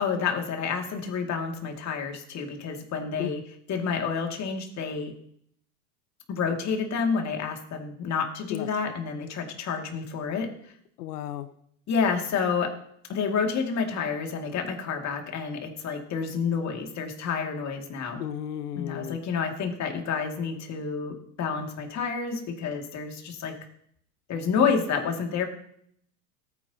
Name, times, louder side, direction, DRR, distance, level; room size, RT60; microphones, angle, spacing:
voice 1, 0.0-3.4 3.7-5.1 6.3-10.5 11.9-12.8 13.1-18.2 18.8-23.6 24.3-25.5, left 6 dB, 35° left, 3 dB, 2.4 m, -29 dB
voice 2, 11.0-11.5 18.2-19.2, left 11 dB, 80° left, 13 dB, 0.9 m, -34 dB
17.5 x 9.8 x 2.9 m, 0.68 s
hypercardioid pair, 110°, 46 cm